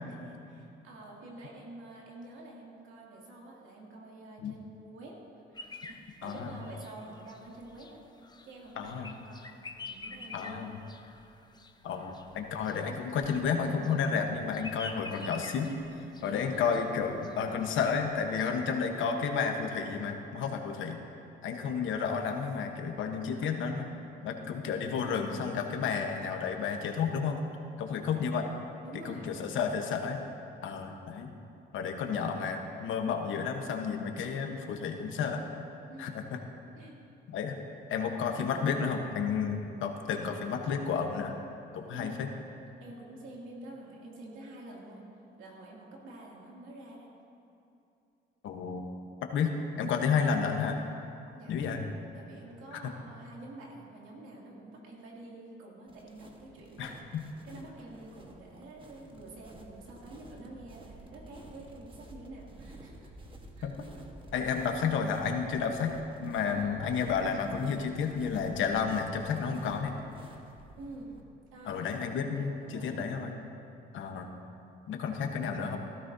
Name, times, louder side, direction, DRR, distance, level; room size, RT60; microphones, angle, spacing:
voice 1, 0.1-5.2 5.5-8.0 8.4-9.6 9.9-11.0 16.2-16.6 28.8-29.6 35.9-36.1 36.7-37.0 42.0-42.2 42.8-45.0 45.4-47.1 51.3-51.6 52.1-57.0 57.4-63.1 63.5-63.8 66.4-67.0 70.8-71.2 71.5-71.9 72.3-73.2, right 2 dB, 85° right, -3 dB, 2.5 m, -48 dB
sound 1, 5.5-18.7, left 3 dB, 20° left, 0.7 m, -48 dB
voice 2, 6.2-6.6 8.8-9.1 10.3-10.8 11.8-21.0 21.4-23.9 24.2-27.4 27.8-28.5 29.0-30.2 30.6-31.3 31.7-35.4 36.0-36.4 37.3-37.6 37.9-41.3 41.7-42.3 48.4-48.9 49.3-50.8 51.5-51.8 52.7-52.8 56.8-57.2 63.6-63.7 64.3-69.9 71.6-73.4 73.9-74.3 74.9-75.8, left 6 dB, 80° left, 4 dB, 1.1 m, -31 dB
sound 2, 55.9-71.2, right 1 dB, 25° right, 1.3 m, -52 dB
15.5 x 13.5 x 2.7 m, 2.8 s
cardioid pair, 90°, 20 cm